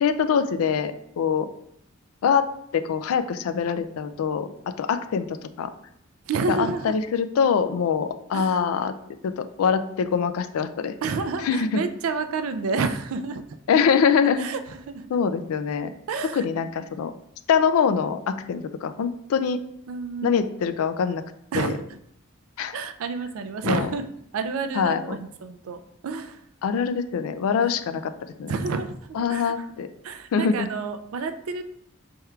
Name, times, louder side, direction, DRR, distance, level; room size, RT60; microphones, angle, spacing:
voice 1, 0.0-1.5 2.2-2.5 2.7-4.5 4.8-5.7 6.5-8.9 9.2-10.9 11.4-11.8 13.7-14.5 15.1-15.9 16.3-17.1 17.5-19.6 20.2-21.2 21.6-21.7 22.6-22.8 23.6-23.9 24.7-25.2 26.6-28.1 28.4-28.5 29.1-29.9 30.3-30.7, left 6 dB, 85° left, 11 dB, 0.3 m, -24 dB
voice 2, 6.3-7.0 8.3-8.6 11.0-13.4 14.4-15.1 16.1-16.5 19.9-20.4 21.5-21.9 22.7-24.1 24.3-26.4 27.6-27.7 28.5-29.6 30.0-31.6, right 4 dB, 75° right, 9 dB, 0.4 m, -29 dB
3.5 x 2.3 x 4.3 m, 0.73 s
head